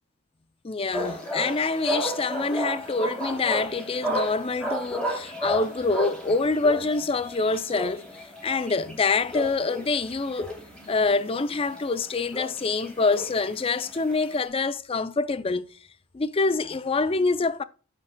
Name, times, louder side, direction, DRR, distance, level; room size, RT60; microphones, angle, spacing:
voice 1, 0.6-10.6 10.9-15.7 16.1-17.6, left 3 dB, 25° left, 0.4 m, -26 dB
sound 1, 0.9-14.4, equal, 5° left, 3.0 m, -33 dB
10.0 x 8.1 x 2.2 m
head